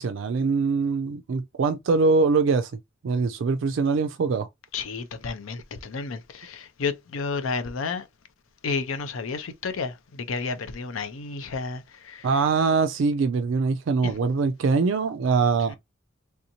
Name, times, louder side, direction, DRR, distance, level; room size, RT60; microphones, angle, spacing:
voice 1, 0.0-2.7 3.0-4.5 12.2-15.8, right 4 dB, 70° right, 0.3 m, -23 dB
voice 2, 4.7-8.1 8.6-12.3 14.0-14.1, left 4 dB, 80° left, 0.5 m, -31 dB
3.4 x 2.6 x 2.8 m
head